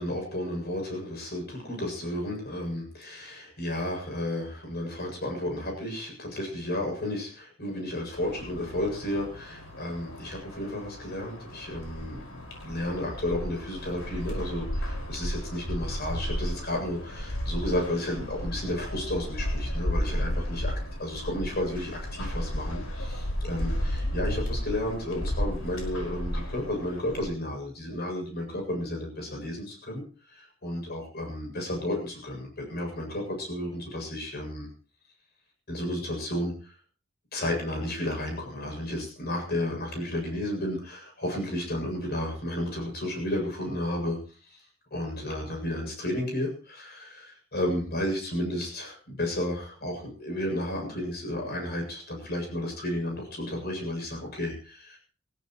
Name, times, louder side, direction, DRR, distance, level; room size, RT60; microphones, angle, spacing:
voice 1, 0.0-12.2 12.6-20.7 21.0-34.7 35.7-36.7 37.3-55.0, left 1 dB, 50° left, 2 dB, 7.7 m, -32 dB
sound 1, 8.1-27.2, equal, 80° left, 5.6 m, -33 dB
25.5 x 16.0 x 3.2 m, 0.38 s
head